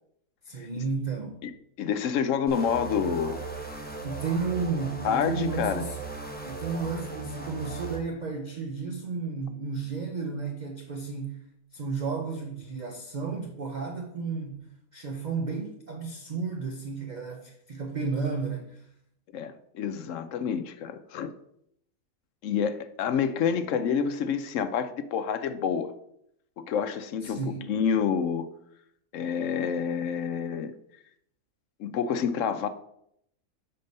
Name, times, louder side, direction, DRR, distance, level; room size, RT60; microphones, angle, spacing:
voice 1, 0.4-1.4 4.0-6.0 6.5-11.4 11.7-14.7 14.9-18.8 27.2-27.7, right 4 dB, 45° right, 0.7 m, -33 dB
voice 2, 1.8-3.4 5.0-5.9 19.3-21.3 22.4-25.9 26.6-28.5 29.1-30.7 31.8-32.7, left 7 dB, 70° left, 0.9 m, -28 dB
sound 1, 2.5-8.0, right 3 dB, 10° left, 1.0 m, -37 dB
6.7 x 4.4 x 5.3 m
omnidirectional pair, 1.4 m